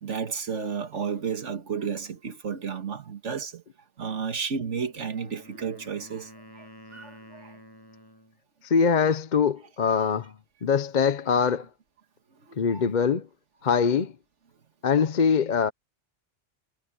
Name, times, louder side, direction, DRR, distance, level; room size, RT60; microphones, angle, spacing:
voice 1, 0.0-3.6 4.0-7.6 12.5-12.8, right 6 dB, 85° right, 1.9 m, -32 dB
Wind instrument woodwind instrument, 4.6-8.4, equal, 20° left, 6.2 m, -50 dB
voice 2, 8.6-10.3 10.6-11.7 12.6-13.3 13.6-14.1 14.8-15.7, left 6 dB, 45° left, 0.8 m, -23 dB
omnidirectional pair, 1.2 m